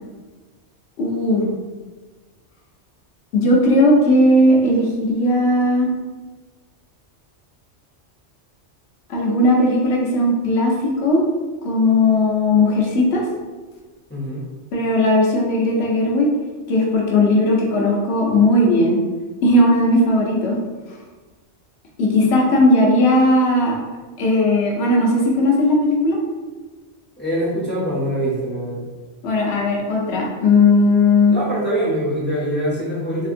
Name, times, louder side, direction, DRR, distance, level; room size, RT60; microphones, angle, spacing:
voice 1, 1.0-1.5 3.3-5.9 9.1-11.2 11.6-13.2 14.7-16.3 16.7-19.0 19.4-20.6 22.0-23.8 24.2-26.2 29.2-31.4, left 1 dB, 65° left, -2 dB, 0.9 m, -17 dB
voice 2, 14.1-14.4 27.2-28.8 31.3-33.3, right 1 dB, 10° left, -7 dB, 0.6 m, -23 dB
3.3 x 2.8 x 2.5 m, 1.3 s
omnidirectional pair, 1.2 m